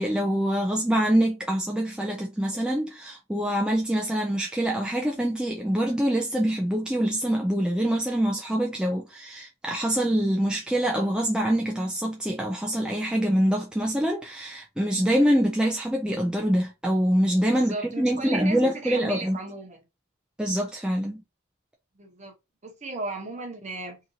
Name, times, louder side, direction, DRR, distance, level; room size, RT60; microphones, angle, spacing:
voice 1, 0.0-19.4 20.4-21.2, equal, 5° right, 0.3 m, -25 dB
voice 2, 17.7-19.8 22.0-22.3 22.6-24.0, right 2 dB, 35° right, 0.9 m, -35 dB
2.8 x 2.5 x 2.7 m
head